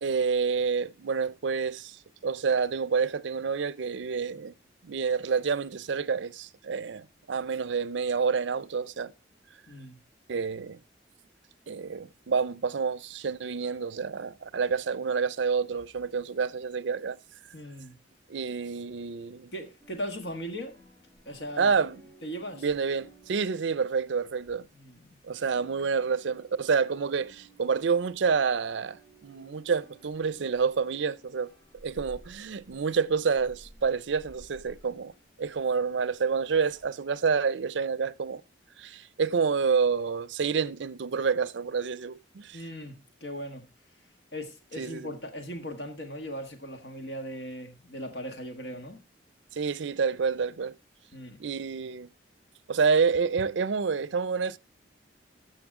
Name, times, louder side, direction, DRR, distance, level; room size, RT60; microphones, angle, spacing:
voice 1, 0.0-4.5 4.8-9.1 10.3-10.8 11.7-17.2 18.3-19.5 21.6-22.0 22.5-24.7 25.2-31.5 31.8-35.1 35.4-38.4 38.8-42.6 44.8-45.1 49.5-50.7 51.4-52.1 52.7-54.6, right 5 dB, 80° right, 0.5 m, -28 dB
voice 2, 9.7-10.0 17.5-18.0 19.5-20.8 21.2-21.7 22.2-22.6 24.8-25.0 42.5-43.6 44.3-49.0 51.1-51.4, equal, 65° left, 1.5 m, -38 dB
sound 1, 19.8-25.1 25.4-36.8, right 1 dB, 20° left, 6.1 m, -56 dB
13.0 x 6.7 x 3.6 m
head